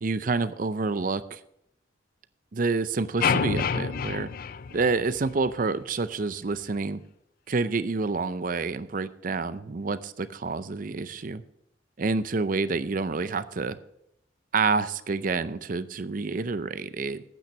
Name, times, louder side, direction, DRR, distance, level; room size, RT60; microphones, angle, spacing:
voice 1, 0.0-1.4 2.5-4.3 4.7-7.0 7.5-11.4 12.0-13.8 14.5-17.2, right 4 dB, 45° right, 14 dB, 0.5 m, -28 dB
sound 1, 3.2-5.5, left 6 dB, 50° left, 0.4 m, -28 dB
9.1 x 8.8 x 5.7 m, 0.78 s
head